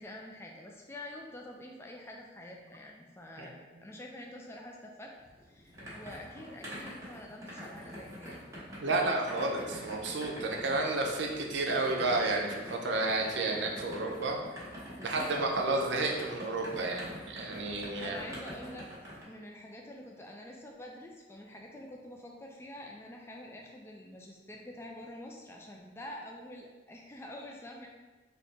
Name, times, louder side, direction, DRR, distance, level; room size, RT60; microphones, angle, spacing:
voice 1, 0.0-5.1 5.4-8.4 15.0-15.5 18.0-18.9 19.2-27.9, left 1 dB, 15° left, 0 dB, 0.3 m, -47 dB
sound 1, 5.2-19.2, equal, 15° right, 1.1 m, -45 dB
voice 2, 8.8-14.4 15.0-18.2, right 2 dB, 70° right, 1 dB, 0.6 m, -31 dB
3.4 x 2.8 x 4.0 m, 1.2 s
head